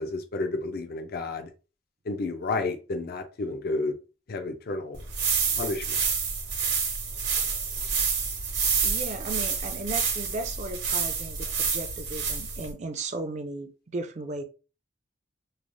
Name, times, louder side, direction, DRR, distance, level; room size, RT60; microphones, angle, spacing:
voice 1, 0.0-1.5 2.1-4.0 4.3-5.0 5.6-6.0, left 3 dB, 55° left, 0.4 m, -31 dB
sound 1, 4.9-12.7, right 5 dB, 70° right, 1.0 m, -28 dB
voice 2, 8.8-14.4, right 2 dB, 40° right, 0.4 m, -35 dB
3.1 x 2.0 x 2.5 m
head